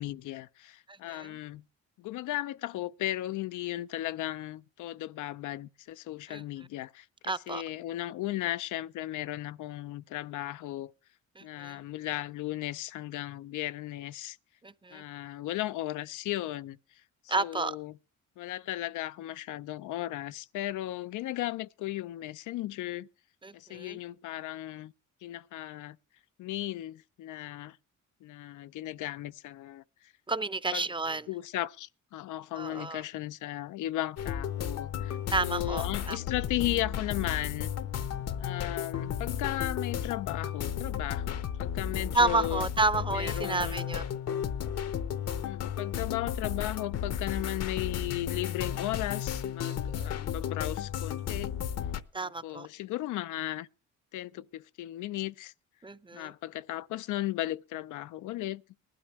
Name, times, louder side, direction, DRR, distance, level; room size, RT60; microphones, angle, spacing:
voice 1, 0.0-1.6 2.0-10.9 11.4-14.4 14.9-16.8 17.2-18.0 18.4-23.1 23.5-24.9 25.2-26.0 26.4-27.8 28.2-30.1 30.7-30.9 31.3-37.7 38.4-42.7 43.1-43.8 45.4-51.5 52.1-53.7 54.1-55.5 56.1-58.6, left 15 dB, 80° left, 0.6 m, -36 dB
voice 2, 7.3-7.6 11.4-11.7 14.6-15.0 17.3-17.7 23.4-24.0 30.3-31.3 32.6-33.0 35.3-36.2 42.1-44.0 49.9-50.1 52.1-52.7 55.8-56.3, right 3 dB, 15° right, 0.6 m, -30 dB
sound 1, 34.2-52.0, left 9 dB, 55° left, 0.9 m, -34 dB
19.5 x 12.5 x 3.1 m
cardioid pair, 90°, 30 cm